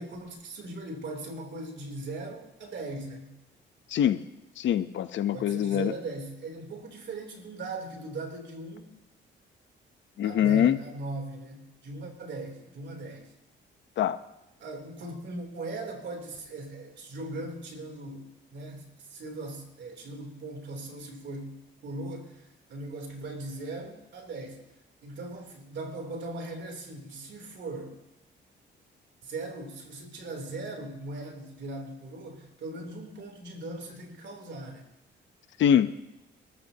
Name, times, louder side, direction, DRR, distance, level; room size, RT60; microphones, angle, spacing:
voice 1, 0.0-3.3 5.3-8.9 10.2-13.3 14.6-24.6 25.0-28.0 29.2-34.9, right 2 dB, 65° right, 3 dB, 3.4 m, -39 dB
voice 2, 4.6-5.9 10.2-10.8 14.0-14.2 35.6-35.9, left 9 dB, 70° left, 12 dB, 0.8 m, -23 dB
24.5 x 14.0 x 2.9 m, 0.92 s
cardioid pair, 90°, 20 cm